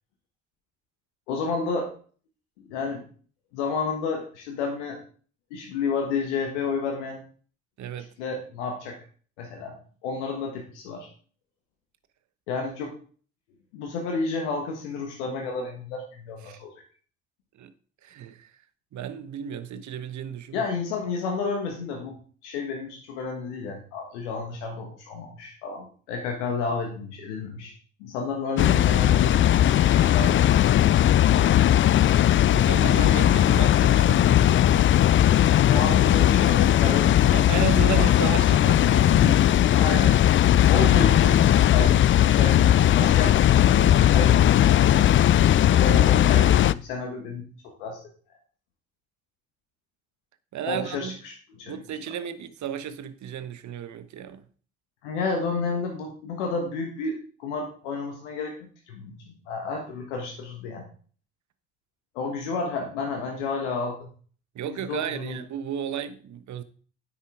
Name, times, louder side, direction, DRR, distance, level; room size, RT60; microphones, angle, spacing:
voice 1, 1.3-1.9 2.6-3.0 3.5-5.0 5.5-7.2 8.2-9.0 9.4-9.8 10.0-11.1 12.5-12.9 13.7-16.7 20.5-22.2 22.4-27.7 28.0-30.6 35.7-37.6 38.0-38.1 39.7-40.2 40.7-41.4 41.7-45.3 45.8-48.0 50.7-51.8 55.0-59.2 59.5-60.8 62.1-64.1 64.7-65.4, left 4 dB, 80° left, 1.4 m, -31 dB
voice 2, 7.8-8.1 16.4-16.6 17.6-17.7 18.0-18.5 18.9-20.7 32.5-35.6 37.3-39.7 50.5-51.2 51.6-54.4 64.5-66.6, right 9 dB, 55° right, 1.1 m, -34 dB
Water, 28.6-46.7, left 12 dB, 35° left, 0.4 m, -18 dB
9.7 x 8.5 x 3.7 m
figure-of-eight pair, 45°, 35 cm